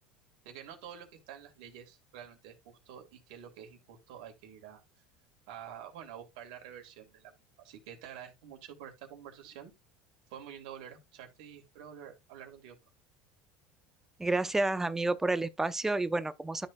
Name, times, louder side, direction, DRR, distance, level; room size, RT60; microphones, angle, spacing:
voice 1, 0.4-4.8 5.5-7.3 7.6-9.7 10.3-12.8, right 9 dB, 80° right, 2.9 m, -48 dB
voice 2, 14.2-16.7, right 2 dB, 10° right, 0.7 m, -30 dB
13.0 x 4.4 x 2.3 m
supercardioid pair, 110°, 4 cm